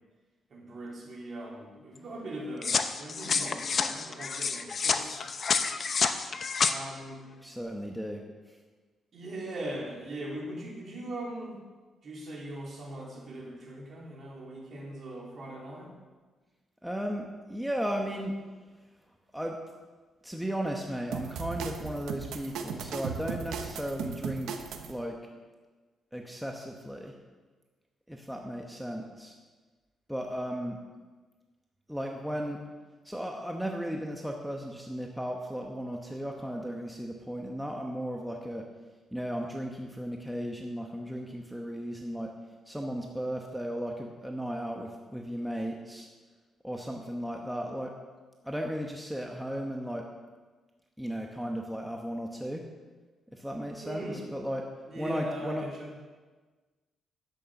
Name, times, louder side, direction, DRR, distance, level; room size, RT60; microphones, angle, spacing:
voice 1, 0.5-5.2 6.6-7.2 9.1-11.6 12.0-15.9 53.8-54.2 54.9-55.9, right 1 dB, 45° right, -3 dB, 3.6 m, -40 dB
sound 1, 2.6-6.7, left 5 dB, 40° left, 0.7 m, -29 dB
voice 2, 7.4-8.2 8.5-8.6 16.8-18.4 19.3-19.6 20.2-24.5 24.9-25.2 26.1-27.1 28.1-29.4 30.1-30.8 31.9-32.6 33.0-38.7 39.1-42.3 42.7-46.1 46.6-47.9 48.4-50.1 51.0-52.6 53.3-54.7 55.0-55.6, equal, ahead, 1 dB, 1.0 m, -35 dB
sound 2, 21.1-24.9, right 6 dB, 90° right, 1.0 m, -37 dB
11.0 x 8.6 x 6.5 m, 1.3 s
cardioid pair, 125°, 0 cm